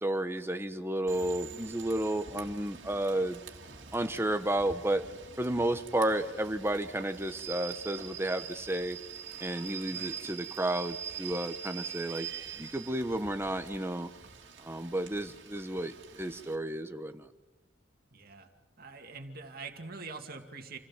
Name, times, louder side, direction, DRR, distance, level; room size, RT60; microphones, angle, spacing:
voice 1, 0.0-3.4 3.9-5.0 5.4-9.0 9.4-12.3 12.6-14.1 14.6-17.3, right 1 dB, 15° right, 8 dB, 1.2 m, -32 dB
Rain / Train, 1.1-16.5, right 7 dB, 70° right, 2.5 m, -44 dB
voice 2, 18.1-18.5 18.8-20.8, right 4 dB, 55° right, 4 dB, 2.2 m, -44 dB
28.5 x 16.5 x 7.4 m, 1.1 s
head